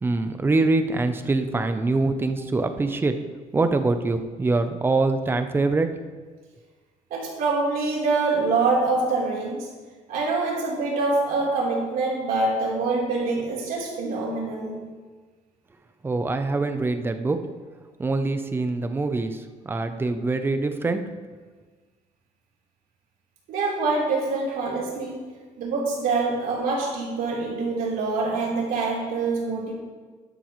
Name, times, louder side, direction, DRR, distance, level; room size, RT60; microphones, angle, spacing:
voice 1, 0.0-3.1 3.5-5.9 16.0-17.4 18.0-21.0, right 3 dB, 15° right, 8 dB, 0.6 m, -24 dB
voice 2, 7.1-9.7 10.1-14.8 23.5-25.2 25.6-29.7, right 3 dB, 80° right, -4 dB, 3.7 m, -25 dB
12.0 x 11.5 x 3.1 m, 1.4 s
cardioid pair, 180°, 15 cm